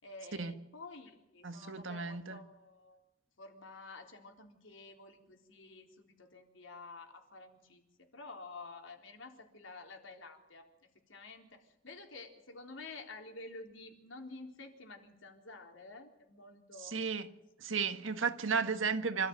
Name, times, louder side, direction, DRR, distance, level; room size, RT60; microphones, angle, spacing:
voice 1, 0.0-3.0 3.4-10.7 11.1-17.0, left 3 dB, 75° left, 3 dB, 4.0 m, -50 dB
voice 2, 1.4-2.4 16.8-17.3 17.6-19.3, right 5 dB, 80° right, 9 dB, 1.7 m, -34 dB
26.5 x 14.5 x 9.3 m, 0.88 s
head